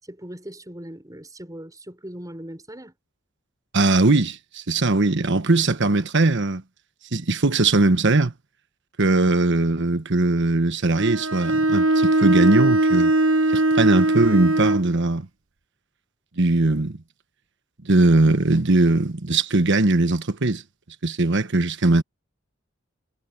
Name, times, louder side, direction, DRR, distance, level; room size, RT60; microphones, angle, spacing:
voice 1, 0.0-3.0, right 1 dB, 15° right, 6.2 m, -39 dB
voice 2, 3.7-6.6 7.1-8.3 9.0-13.1 13.5-15.3 16.4-17.0 17.8-20.6 21.0-22.0, right 2 dB, 60° right, 1.3 m, -20 dB
Bowed string instrument, 11.0-14.9, right 2 dB, 85° right, 1.1 m, -20 dB
head